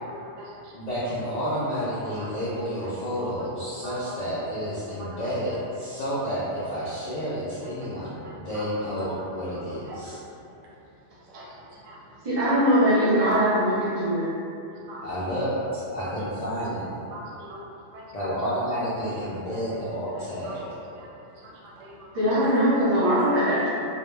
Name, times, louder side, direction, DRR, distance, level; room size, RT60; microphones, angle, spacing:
voice 1, 0.1-0.7 2.2-2.3 2.8-2.9 3.8-4.0 5.0-5.1 7.8-7.9 8.2-8.7 9.7-10.1 11.3-12.0 14.7-15.0 16.0-16.1 17.1-17.6 17.9-18.5 19.5-19.8 20.4-21.1 21.3-22.1, right 1 dB, 85° right, -4 dB, 0.9 m, -43 dB
voice 2, 0.7-10.2 15.0-17.1 18.1-20.6, equal, 70° left, -9 dB, 0.4 m, -30 dB
voice 3, 12.2-14.3 22.1-23.7, equal, 40° right, -9 dB, 0.5 m, -21 dB
2.1 x 2.1 x 3.1 m, 2.7 s
omnidirectional pair, 1.2 m